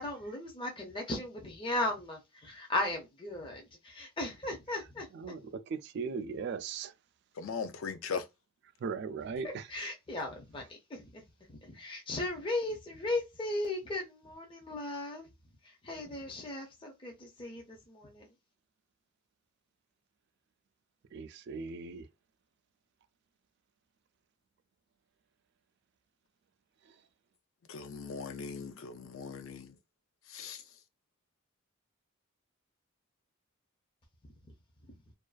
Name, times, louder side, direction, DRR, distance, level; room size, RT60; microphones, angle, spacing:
voice 1, 0.0-5.1 9.7-11.2 11.5-15.3 15.8-18.3, left 2 dB, 25° left, 0.5 m, -37 dB
voice 2, 5.1-6.9 8.8-9.7 21.1-22.1 26.8-27.0, right 5 dB, 55° right, 0.3 m, -38 dB
voice 3, 7.4-8.3 27.7-29.8 30.3-30.6, left 5 dB, 75° left, 0.4 m, -39 dB
2.4 x 2.2 x 2.3 m
head